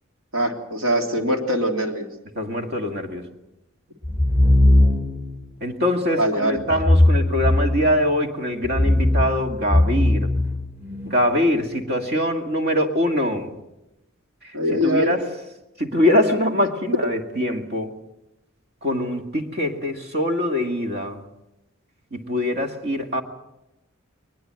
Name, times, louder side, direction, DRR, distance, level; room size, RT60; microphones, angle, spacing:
voice 1, 0.3-2.1 6.2-6.5 14.5-15.1, equal, 70° right, 3.2 m, -22 dB
voice 2, 2.4-3.3 5.6-10.3 11.0-13.5 14.7-15.2 15.8-17.9 18.8-21.2 22.1-23.2, left 1 dB, 50° right, 2.2 m, -23 dB
sound 1, 4.0-5.3 6.7-8.1 8.6-11.1, left 1 dB, 10° right, 1.4 m, -19 dB
22.0 x 21.0 x 7.7 m
head